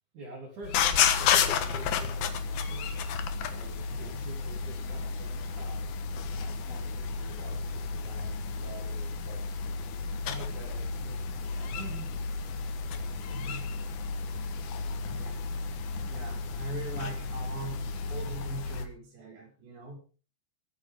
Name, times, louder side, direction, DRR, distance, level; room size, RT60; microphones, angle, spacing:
voice 1, 0.1-3.0 3.5-5.9 6.3-9.5 10.3-12.2, right 2 dB, 45° right, -3 dB, 4.3 m, -46 dB
sound 1, 0.6-18.9, left 6 dB, 65° left, 2.8 m, -32 dB
voice 2, 3.9-4.2 13.1-13.8 15.0-15.8 16.1-20.0, right 2 dB, 70° right, -1 dB, 7.5 m, -43 dB
22.5 x 9.4 x 3.7 m, 0.35 s
omnidirectional pair, 5.3 m